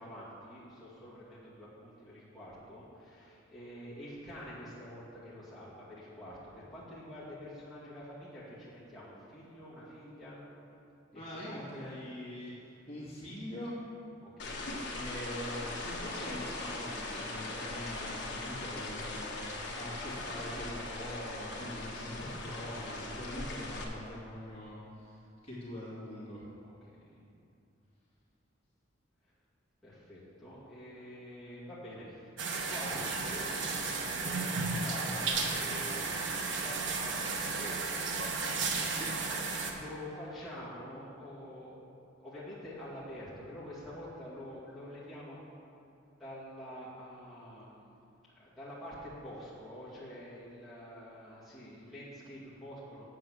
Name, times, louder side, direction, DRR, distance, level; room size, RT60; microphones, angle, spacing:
voice 1, 0.0-10.4 11.2-12.0 14.2-14.7 18.3-18.4 26.6-27.2 29.8-39.0 39.7-41.8 42.2-45.5 46.1-53.0, equal, ahead, -11 dB, 2.1 m, -47 dB
voice 2, 11.1-12.5 12.9-13.8 14.9-25.2 25.4-26.4 38.9-39.2, equal, 30° left, -8 dB, 2.3 m, -43 dB
sound 1, 14.4-23.8, left 2 dB, 55° left, 1.3 m, -40 dB
sound 2, 32.4-39.7, right 4 dB, 65° right, 1.0 m, -34 dB
7.8 x 7.5 x 6.3 m, 2.5 s
head